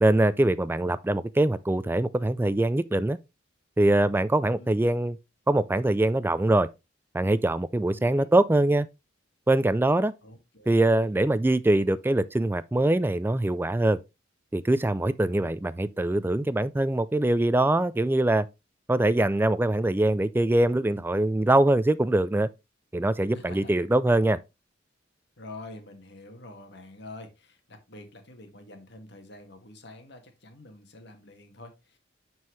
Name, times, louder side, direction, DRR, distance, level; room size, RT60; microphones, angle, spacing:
voice 1, 0.0-3.2 3.8-5.2 5.5-6.7 7.1-8.9 9.5-10.1 10.7-14.0 14.5-18.5 18.9-22.5 22.9-24.4, right 1 dB, 10° right, 0.3 m, -23 dB
voice 2, 4.4-4.9 7.9-8.2 10.2-11.1 23.3-23.7 25.4-32.0, left 2 dB, 60° left, 1.8 m, -46 dB
9.5 x 4.5 x 3.1 m
head